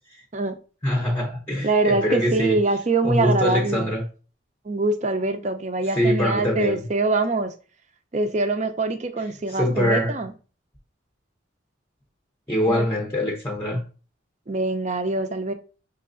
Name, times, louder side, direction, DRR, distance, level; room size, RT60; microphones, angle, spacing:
voice 1, 0.8-2.6 3.0-4.0 6.0-6.8 9.5-10.2 12.5-13.8, equal, 10° left, 0.6 m, -23 dB
voice 2, 1.6-3.9 4.7-7.5 8.1-10.3 12.7-12.9 14.5-15.5, right 2 dB, 35° right, 0.5 m, -24 dB
5.7 x 3.2 x 2.5 m
head